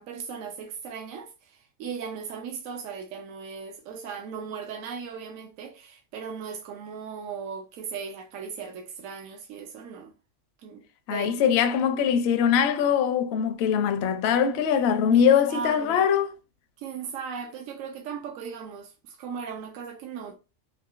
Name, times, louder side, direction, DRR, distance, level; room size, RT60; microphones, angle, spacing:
voice 1, 0.0-10.1 10.6-11.7 15.1-16.1 16.8-20.4, right 6 dB, 75° right, 0.9 m, -38 dB
voice 2, 11.1-16.3, left 8 dB, 65° left, 0.7 m, -22 dB
3.7 x 2.6 x 2.4 m
omnidirectional pair, 1.4 m